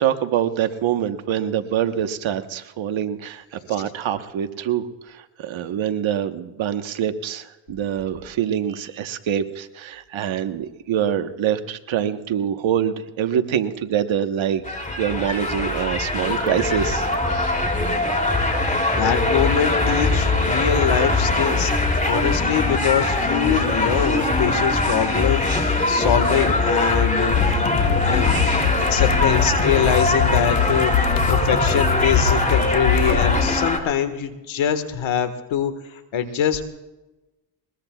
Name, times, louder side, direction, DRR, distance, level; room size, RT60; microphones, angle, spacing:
voice 1, 0.0-17.7 28.7-28.9 33.3-33.4, right 9 dB, 65° right, 9 dB, 1.3 m, -25 dB
sound 1, 14.6-33.8, left 2 dB, 15° left, 2.9 m, -22 dB
voice 2, 18.9-21.7 22.0-27.6 28.0-28.4 28.8-36.6, left 8 dB, 65° left, 9 dB, 1.7 m, -23 dB
sound 2, 27.3-33.4, left 7 dB, 85° left, 1.7 m, -23 dB
21.5 x 21.5 x 2.4 m, 1.0 s
cardioid pair, 80°, 50 cm